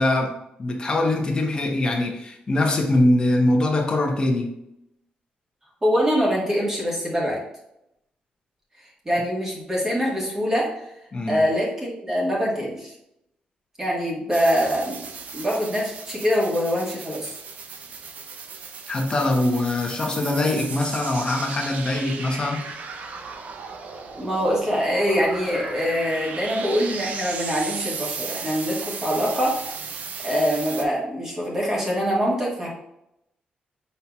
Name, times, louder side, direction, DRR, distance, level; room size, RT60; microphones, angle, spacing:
voice 1, 0.0-4.5 11.1-11.4 18.9-22.7, left 2 dB, 30° left, 0.8 m, -23 dB
voice 2, 5.8-7.4 9.0-10.9 11.3-12.9 13.8-15.0 15.3-17.3 24.2-29.6 30.2-32.7, equal, 15° right, 1.3 m, -24 dB
sound 1, 14.3-30.8, right 5 dB, 55° right, 0.5 m, -36 dB
5.5 x 4.2 x 2.3 m
wide cardioid pair, 160°, 3 cm